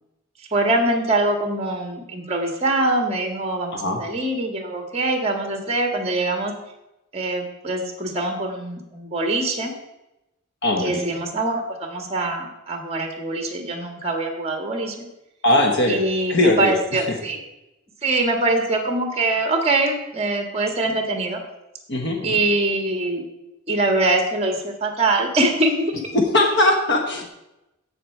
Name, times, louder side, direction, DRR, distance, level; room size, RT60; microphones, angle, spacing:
voice 1, 0.5-6.5 7.1-9.7 10.8-15.1 15.9-17.4 18.0-21.4 22.2-23.3 23.7-25.9, right 2 dB, 30° right, 4 dB, 1.6 m, -23 dB
voice 2, 10.6-11.2 15.4-16.0 16.3-17.2 21.9-22.4 26.1-27.3, left 2 dB, 55° left, 3 dB, 1.2 m, -20 dB
15.0 x 5.8 x 4.5 m, 0.94 s
head